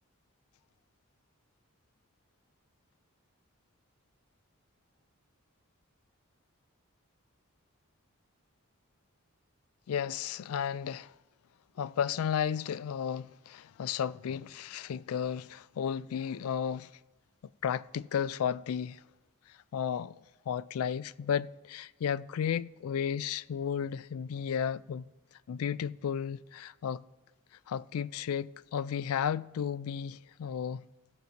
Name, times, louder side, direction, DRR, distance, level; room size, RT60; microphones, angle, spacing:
voice 1, 9.9-11.1 11.8-16.9 17.6-19.0 19.5-25.0 25.5-27.0 27.7-30.8, left 8 dB, 80° left, 0.3 m, -33 dB
18.0 x 8.1 x 2.9 m
head